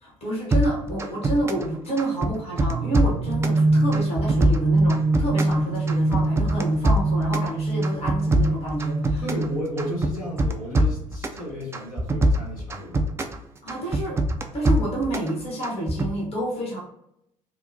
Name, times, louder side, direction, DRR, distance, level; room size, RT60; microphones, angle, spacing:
voice 1, 0.0-9.2 13.6-14.2 14.5-16.8, right 1 dB, 35° left, -3 dB, 1.0 m, -28 dB
sound 1, 0.5-1.7 2.0-3.6 3.9-5.6 5.9-7.5 7.8-9.5 9.8-11.4 11.7-13.4 13.7-15.3 15.6-16.1, right 1 dB, 15° right, 0.3 m, -23 dB
sound 2, 2.7-10.4, right 2 dB, 75° right, 0.6 m, -24 dB
voice 2, 9.2-13.0, equal, 80° left, -7 dB, 1.2 m, -33 dB
2.8 x 2.0 x 2.6 m, 0.78 s
figure-of-eight pair, 50°, 17 cm